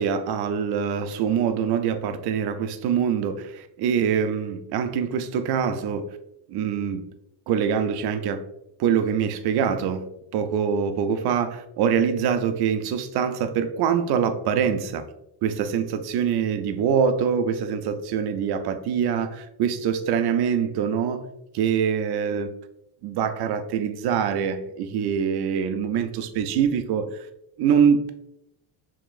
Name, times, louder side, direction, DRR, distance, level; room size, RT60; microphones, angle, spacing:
voice 1, 0.0-6.2 6.5-7.1 7.5-8.4 8.8-10.1 10.3-15.0 15.4-21.3 21.5-22.5 23.0-27.3 27.6-28.1, right 7 dB, 50° right, 9 dB, 0.6 m, -24 dB
4.8 x 2.9 x 2.4 m, 0.81 s
supercardioid pair, 90°, 49 cm